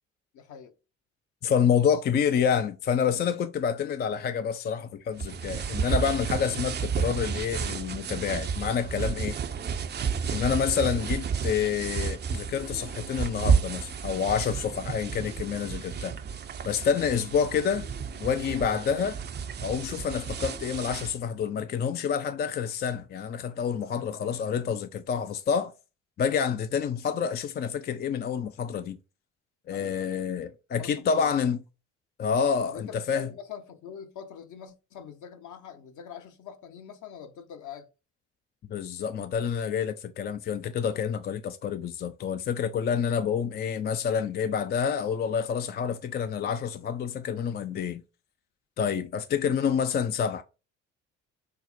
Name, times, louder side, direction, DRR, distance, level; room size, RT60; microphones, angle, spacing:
voice 1, 0.3-0.7 10.3-10.5 23.9-24.0 29.7-30.2 30.8-31.3 32.7-37.9, left 7 dB, 50° left, 0.8 m, -44 dB
voice 2, 1.4-9.3 10.3-16.1 16.6-17.9 18.2-19.2 19.6-25.7 26.2-29.0 29.7-31.6 32.2-33.3 38.7-48.0 48.8-50.4, left 7 dB, 30° left, 0.4 m, -28 dB
sound 1, 5.2-21.2, right 6 dB, 30° right, 0.5 m, -31 dB
sound 2, 10.0-12.1 12.5-14.7 15.1-17.3 17.7-19.9 20.3-20.8, left 4 dB, 70° left, 1.6 m, -55 dB
5.7 x 2.0 x 2.5 m
hypercardioid pair, 50°, 38 cm